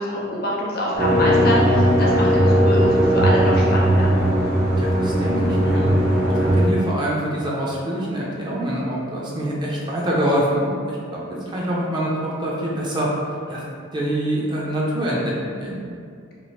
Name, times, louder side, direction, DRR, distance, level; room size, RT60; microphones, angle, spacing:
voice 1, 0.0-4.1, equal, 50° left, -4 dB, 0.6 m, -25 dB
sound 1, 0.9-6.6, equal, 90° right, 1.2 m, -18 dB
voice 2, 4.8-6.0 6.3-13.6 13.9-15.8, right 1 dB, 20° right, -5 dB, 0.4 m, -25 dB
3.1 x 2.5 x 2.7 m, 2.3 s
head